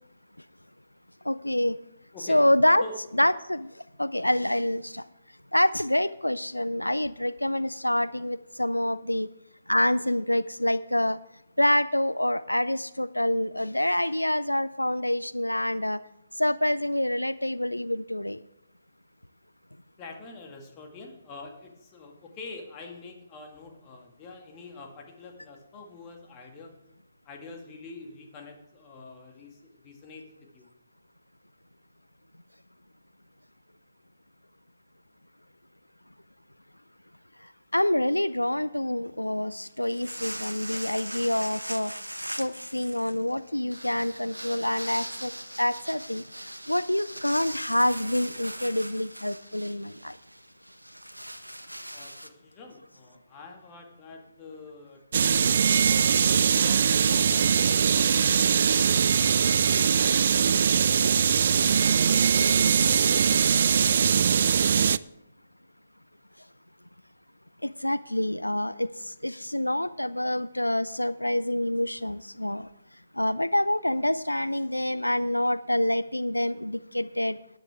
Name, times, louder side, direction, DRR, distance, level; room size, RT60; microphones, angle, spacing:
voice 1, 1.3-1.8 2.3-2.8 3.2-3.7 4.0-5.0 5.5-9.3 9.7-11.2 11.6-16.0 16.4-18.4 37.7-41.9 42.4-45.3 45.6-46.2 46.7-50.1 67.6-72.7 73.2-77.4, left 1 dB, 85° left, 16 dB, 0.4 m, -26 dB
voice 2, 20.0-26.7 27.2-30.3 30.5-30.7 51.9-55.3 55.8-58.9 60.0-61.6 62.2-63.5, left 3 dB, 20° left, 2 dB, 2.1 m, -46 dB
sound 1, 39.6-52.3, equal, 85° right, 1.0 m, -40 dB
sound 2, 55.1-65.0, right 7 dB, 50° right, 0.3 m, -21 dB
14.0 x 10.5 x 3.5 m, 0.87 s
figure-of-eight pair, 135°, 0 cm